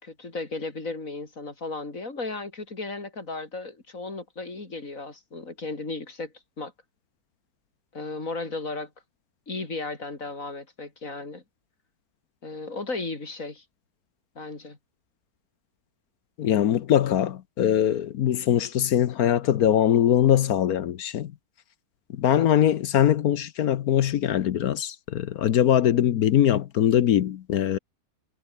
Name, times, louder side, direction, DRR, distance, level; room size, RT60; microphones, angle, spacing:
voice 1, 0.0-6.7 7.9-8.9 9.5-11.4 12.4-13.6 14.4-14.8, left 3 dB, 45° left, 4.2 m, -35 dB
voice 2, 16.4-21.3 22.1-27.8, left 10 dB, 60° left, 1.1 m, -22 dB
omnidirectional pair, 2.0 m